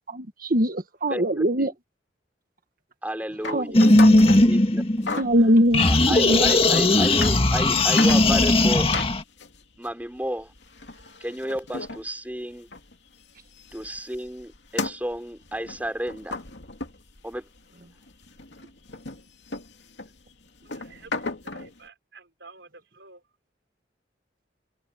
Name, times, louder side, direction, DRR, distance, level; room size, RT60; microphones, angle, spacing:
voice 1, 0.0-1.7 3.5-4.3 5.2-6.8, equal, 50° right, 1.5 m, -23 dB
voice 2, 1.1-1.7 3.0-3.9 4.4-5.2 5.8-8.9 9.8-10.5 11.2-12.7 13.7-16.4 17.2-17.5, right 1 dB, 10° right, 3.7 m, -32 dB
sound 1, 3.4-4.5 5.0-5.4 6.2-6.3 6.9-7.4 7.7-8.6 8.9-13.0 13.2-17.6 18.0-21.8, left 3 dB, 70° left, 2.7 m, -35 dB
sound 2, 3.7-5.4 5.7-9.2, left 2 dB, 30° left, 1.9 m, -18 dB
voice 3, 20.7-23.2, right 3 dB, 75° right, 5.1 m, -50 dB
head